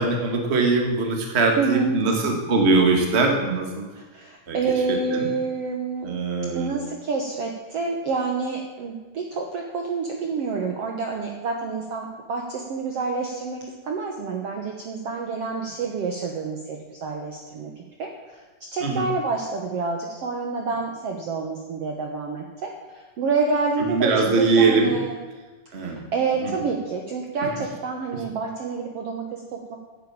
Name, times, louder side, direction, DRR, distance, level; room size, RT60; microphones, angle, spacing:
voice 1, 0.0-3.8 4.5-4.6 4.9-5.3 6.0-6.8 18.8-19.1 23.9-24.9 25.7-26.0 26.4-26.5 27.4-27.5, right 3 dB, 25° right, 2 dB, 1.5 m, -21 dB
voice 2, 1.6-2.0 4.0-6.1 6.5-25.2 25.8-29.8, right 4 dB, 60° right, 2 dB, 1.8 m, -28 dB
10.5 x 9.4 x 8.7 m, 1.3 s
omnidirectional pair, 3.9 m